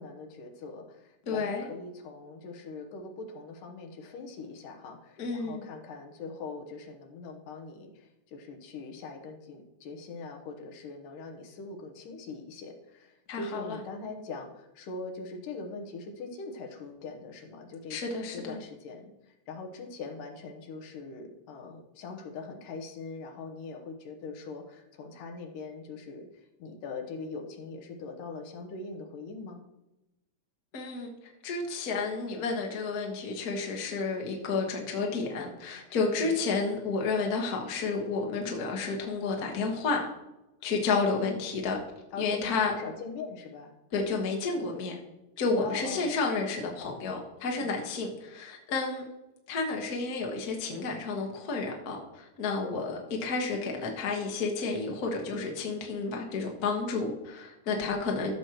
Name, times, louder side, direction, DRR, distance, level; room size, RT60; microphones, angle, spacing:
voice 1, 0.0-18.0 18.3-26.3 26.6-29.6 36.1-36.3 41.1-41.5 42.1-43.7 45.6-46.1 47.5-47.7 57.7-58.0, left 3 dB, 75° left, 4 dB, 2.6 m, -42 dB
voice 2, 1.3-1.7 5.2-5.6 13.3-13.8 17.9-18.6 30.7-31.1 31.4-40.1 40.6-41.8 42.2-42.7 43.9-45.0 45.4-49.1 49.5-58.3, left 4 dB, 60° left, 0 dB, 0.9 m, -31 dB
14.0 x 6.2 x 3.0 m, 0.97 s
omnidirectional pair, 3.9 m